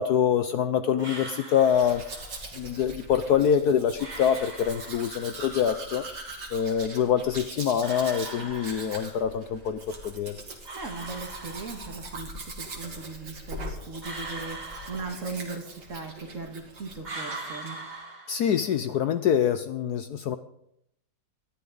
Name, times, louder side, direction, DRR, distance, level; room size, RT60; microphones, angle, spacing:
voice 1, 0.0-2.3 2.5-6.0 6.5-10.4 18.3-20.4, left 8 dB, 65° left, 10 dB, 1.0 m, -25 dB
sound 1, 1.0-2.5 4.0-5.5 7.8-9.4 10.7-12.2 14.0-15.8 17.0-18.9, right 2 dB, 25° right, 2.0 m, -41 dB
Domestic sounds home sounds, 1.6-17.0 17.3-17.8, right 2 dB, 60° right, 2.8 m, -42 dB
voice 2, 10.7-14.6 14.9-17.8, right 4 dB, 45° right, 4 dB, 1.9 m, -38 dB
20.0 x 13.0 x 3.9 m, 0.76 s
omnidirectional pair, 2.1 m